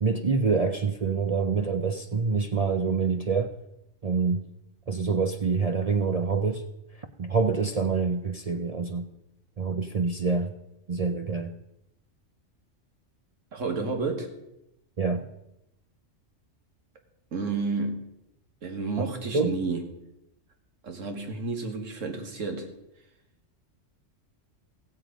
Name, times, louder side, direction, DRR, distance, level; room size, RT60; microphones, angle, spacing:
voice 1, 0.0-3.5 4.0-4.4 4.9-6.6 6.9-9.1 9.6-10.6 10.9-11.5 15.0-15.3 19.0-19.6, right 4 dB, 45° right, 6 dB, 0.5 m, -26 dB
voice 2, 13.5-14.3 17.3-18.0 18.6-19.8 20.8-22.7, right 4 dB, 75° right, 4 dB, 1.9 m, -31 dB
15.5 x 7.7 x 5.0 m, 0.86 s
omnidirectional pair, 1.3 m